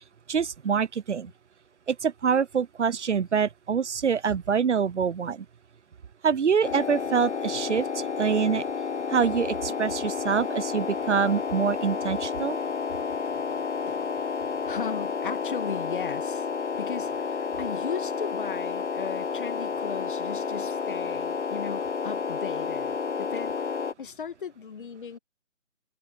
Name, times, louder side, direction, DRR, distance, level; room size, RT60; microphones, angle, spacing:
voice 1, 0.3-1.3 1.9-5.4 6.2-8.6 9.1-12.6, right 6 dB, 65° right, 0.7 m, -25 dB
sound 1, 6.6-23.9, left 5 dB, 60° left, 1.3 m, -31 dB
voice 2, 14.6-16.5 16.8-25.2, left 7 dB, 40° left, 1.5 m, -37 dB
figure-of-eight pair, 145°, 38 cm